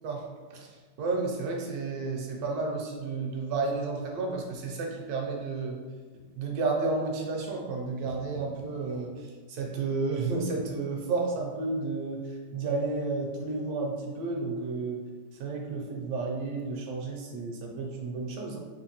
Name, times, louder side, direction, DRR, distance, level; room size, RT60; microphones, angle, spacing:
voice 1, 0.0-5.8 6.4-15.0 15.4-18.6, right 3 dB, 70° right, 0 dB, 1.0 m, -32 dB
3.7 x 2.5 x 2.8 m, 1.5 s
omnidirectional pair, 1.8 m